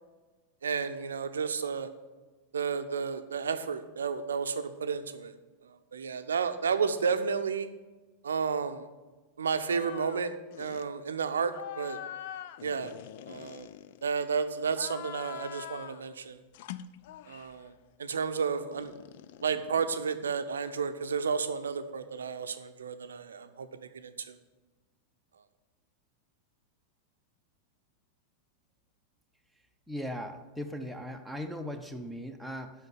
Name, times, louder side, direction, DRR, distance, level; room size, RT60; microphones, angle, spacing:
voice 1, 0.6-1.9 2.5-5.3 5.6-7.7 8.2-8.9 9.4-10.3 10.6-12.0 12.6-12.9 13.3-13.7 14.0-16.4 17.3-17.7 18.0-18.9 19.4-24.4, right 5 dB, 70° right, 9 dB, 0.6 m, -32 dB
sound 1, 9.6-10.2 10.5-10.9 11.5-14.3 14.7-16.1 16.5-17.6 18.7-20.5, left 11 dB, 50° left, 0.3 m, -44 dB
voice 2, 29.9-32.7, equal, ahead, 7 dB, 0.8 m, -38 dB
7.9 x 5.9 x 7.2 m, 1.3 s
figure-of-eight pair, 90°, 0 cm